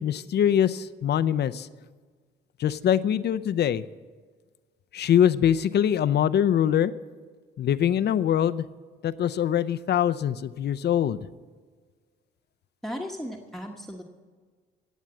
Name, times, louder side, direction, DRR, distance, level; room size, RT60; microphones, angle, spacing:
voice 1, 0.0-1.7 2.6-3.8 4.9-6.9 7.6-8.6 9.0-11.2, left 9 dB, 60° left, 14 dB, 0.6 m, -23 dB
voice 2, 12.8-14.0, equal, ahead, 2 dB, 1.2 m, -36 dB
17.5 x 7.3 x 7.6 m, 1.5 s
cardioid pair, 90°, 20 cm